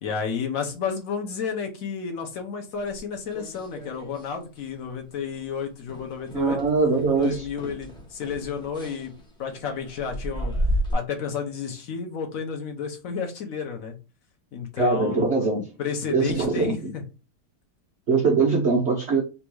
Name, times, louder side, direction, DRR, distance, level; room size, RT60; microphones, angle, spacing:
voice 1, 0.0-6.6 7.1-9.1 9.4-10.5 10.9-13.9 14.5-15.3 15.8-17.0, left 6 dB, 50° left, 1.1 m, -31 dB
sound 1, 2.9-4.3 4.6-4.9 5.3-5.4 5.9-10.9, equal, 5° left, 0.3 m, -33 dB
voice 2, 6.3-7.4 14.8-15.7 16.1-16.7 18.1-19.2, right 4 dB, 85° right, 0.5 m, -22 dB
3.5 x 2.9 x 4.5 m
omnidirectional pair, 2.3 m